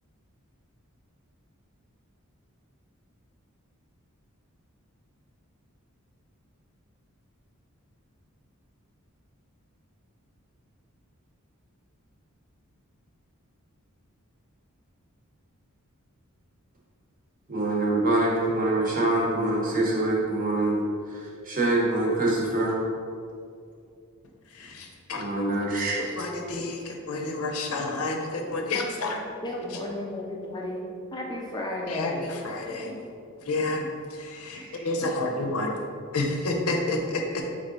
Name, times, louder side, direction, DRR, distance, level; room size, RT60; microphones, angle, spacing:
voice 1, 17.5-20.8 21.5-22.7 25.2-26.0 34.5-34.8, right 2 dB, 40° right, -3 dB, 0.8 m, -25 dB
voice 2, 24.6-25.2 25.9-29.2 31.9-33.0 33.5-33.8 34.2-35.8 36.1-37.4, left 2 dB, 80° left, 2 dB, 0.6 m, -30 dB
voice 3, 29.4-32.3, left 1 dB, 20° left, -2 dB, 0.3 m, -33 dB
3.6 x 3.3 x 3.9 m, 2.4 s
head